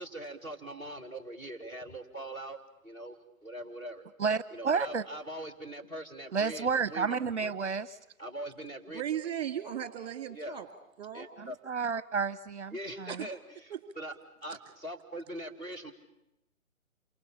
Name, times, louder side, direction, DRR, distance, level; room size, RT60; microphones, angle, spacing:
voice 1, 0.0-2.6 2.8-4.0 4.5-7.2 7.4-7.5 8.2-9.0 10.3-10.6 11.1-11.5 12.7-14.1 14.4-15.9, right 1 dB, 10° left, -2 dB, 2.2 m, -42 dB
voice 2, 4.2-5.0 6.3-8.0 11.4-13.3, right 5 dB, 55° right, 15 dB, 0.9 m, -31 dB
voice 3, 8.9-10.7 11.0-11.3 13.1-13.3 13.7-13.8 14.5-14.6, right 10 dB, 30° right, 9 dB, 2.3 m, -36 dB
28.5 x 25.0 x 7.3 m, 0.86 s
figure-of-eight pair, 135°, 42 cm